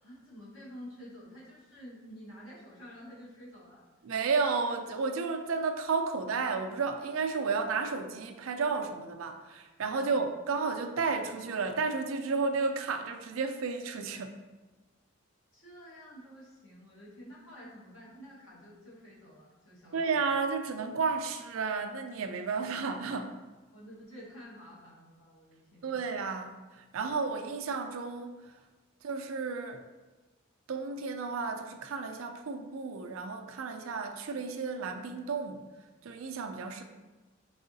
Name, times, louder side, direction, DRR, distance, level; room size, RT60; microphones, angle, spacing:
voice 1, 0.0-3.8 10.0-10.3 15.5-20.2 23.7-26.0 36.5-36.8, equal, 70° left, -6 dB, 1.4 m, -50 dB
voice 2, 4.0-14.4 19.9-23.4 25.8-28.4 29.0-29.8 30.7-35.6 36.0-36.8, right 4 dB, 85° right, 6 dB, 0.4 m, -32 dB
4.7 x 3.6 x 2.6 m, 1.2 s
head